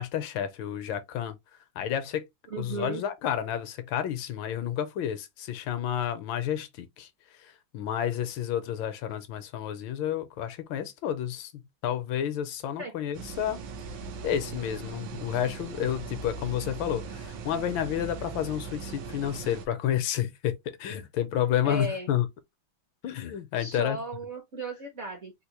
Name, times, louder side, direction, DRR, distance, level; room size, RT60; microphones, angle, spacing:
voice 1, 0.0-1.4 1.8-2.3 2.6-7.1 7.4-13.6 14.2-22.3 23.0-24.0, left 10 dB, 80° left, 1.3 m, -30 dB
voice 2, 2.5-3.0 12.8-12.9 21.6-22.1 23.6-25.3, right 2 dB, 50° right, 0.9 m, -35 dB
sound 1, 13.1-19.7, right 5 dB, 75° right, 1.3 m, -39 dB
3.6 x 2.4 x 2.8 m
omnidirectional pair, 2.2 m